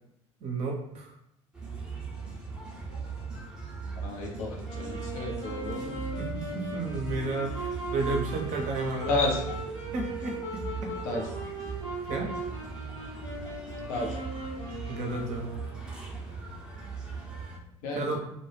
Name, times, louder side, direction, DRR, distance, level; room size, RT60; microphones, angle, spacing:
voice 1, 0.4-1.1 6.2-6.3 6.5-9.2 9.9-10.3 12.1-12.3 14.9-15.6 17.9-18.2, right 3 dB, 45° right, 1 dB, 0.6 m, -32 dB
sound 1, 1.5-17.6, right 5 dB, 5° right, 0.7 m, -39 dB
voice 2, 4.0-6.0 9.1-9.4 11.0-11.2 13.9-14.2 17.8-18.2, left 2 dB, 55° left, 0 dB, 0.6 m, -31 dB
Wind instrument woodwind instrument, 4.6-15.8, right 1 dB, 85° left, 0.8 m, -38 dB
2.2 x 2.2 x 3.1 m, 0.79 s
figure-of-eight pair, 65°, 16 cm